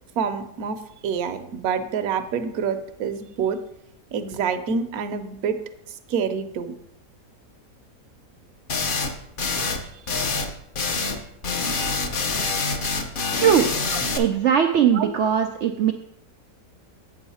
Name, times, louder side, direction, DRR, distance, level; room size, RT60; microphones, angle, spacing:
voice 1, 0.2-3.6 4.1-5.6 6.1-6.8 14.9-15.1, right 6 dB, 65° right, 8 dB, 1.1 m, -27 dB
sound 1, 8.7-9.1 9.4-9.8 10.1-10.5 10.7-11.2 11.4-14.2, left 4 dB, 50° left, 0.7 m, -25 dB
voice 2, 13.4-13.7 14.2-15.9, right 8 dB, 90° right, 5 dB, 0.6 m, -19 dB
8.6 x 6.4 x 4.2 m, 0.78 s
omnidirectional pair, 1.8 m